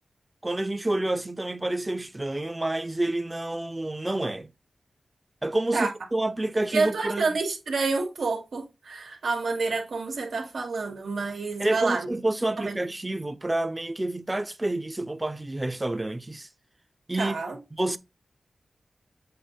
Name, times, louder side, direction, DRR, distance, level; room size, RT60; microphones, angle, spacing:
voice 1, 0.4-4.5 5.4-7.3 11.6-16.5 17.1-17.4 17.7-18.0, right 2 dB, 25° right, 0.7 m, -28 dB
voice 2, 6.7-12.1 12.6-12.8 17.1-17.6, right 4 dB, 85° right, 2.3 m, -28 dB
7.7 x 2.7 x 5.1 m
cardioid pair, 65°, 0 cm